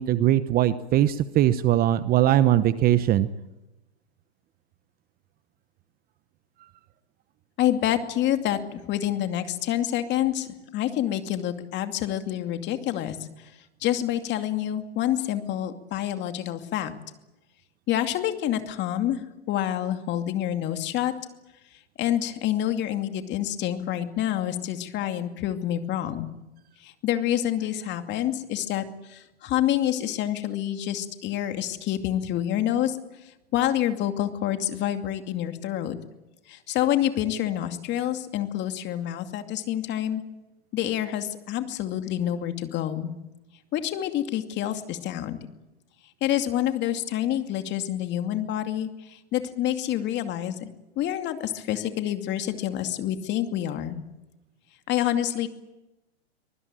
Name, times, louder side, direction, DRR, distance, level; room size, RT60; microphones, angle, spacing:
voice 1, 0.0-3.3, right 12 dB, 25° right, 14 dB, 0.9 m, -21 dB
voice 2, 7.6-13.2 13.8-16.9 17.9-19.2 19.5-21.1 22.0-26.3 26.8-33.0 33.5-35.9 36.5-40.2 40.7-43.1 43.7-45.4 46.2-50.7 51.0-54.0 54.9-55.5, left 12 dB, 30° left, 7 dB, 2.5 m, -27 dB
24.0 x 20.0 x 9.0 m, 0.99 s
hypercardioid pair, 120°, 34 cm